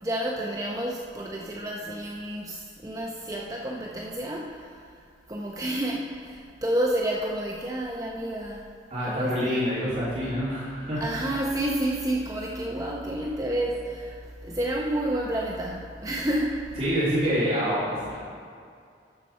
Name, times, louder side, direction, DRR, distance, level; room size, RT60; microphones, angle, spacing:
voice 1, 0.0-4.7 5.3-8.6 9.0-9.6 11.0-14.2 14.4-16.6, right 1 dB, 20° right, -2 dB, 0.7 m, -30 dB
voice 2, 8.9-11.0 16.8-18.2, equal, 40° right, -11 dB, 2.9 m, -26 dB
12.0 x 7.6 x 4.3 m, 2.3 s
head